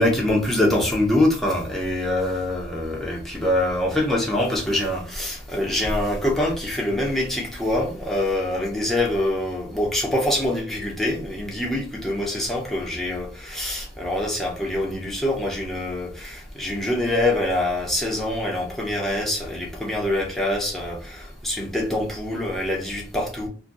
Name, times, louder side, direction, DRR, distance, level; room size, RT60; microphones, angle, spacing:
voice 1, 0.0-23.5, left 1 dB, ahead, 0.7 m, -24 dB
2.6 x 2.1 x 3.9 m
head